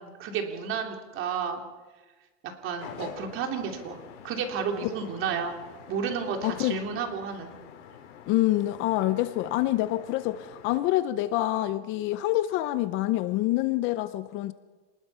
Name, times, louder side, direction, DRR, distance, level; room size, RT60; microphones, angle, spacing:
voice 1, 0.0-1.6 2.4-5.6 5.9-7.5, right 6 dB, 35° right, 3.2 m, -32 dB
sound 1, 2.8-10.8, left 8 dB, 85° left, 4.6 m, -47 dB
voice 2, 6.4-6.8 8.3-14.5, left 15 dB, 35° left, 0.6 m, -26 dB
27.0 x 20.0 x 5.6 m
supercardioid pair, 155°, 36 cm